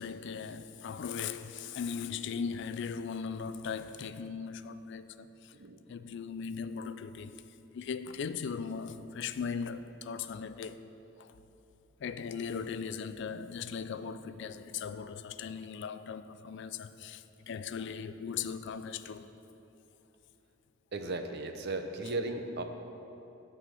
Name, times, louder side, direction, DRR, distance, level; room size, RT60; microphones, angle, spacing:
voice 1, 0.0-5.5 5.9-7.4 7.7-10.8 11.2-11.3 12.0-19.4, left 6 dB, 60° left, 0.3 m, -38 dB
voice 2, 20.9-22.6, right 2 dB, 55° right, 0.7 m, -36 dB
11.0 x 4.2 x 7.6 m
head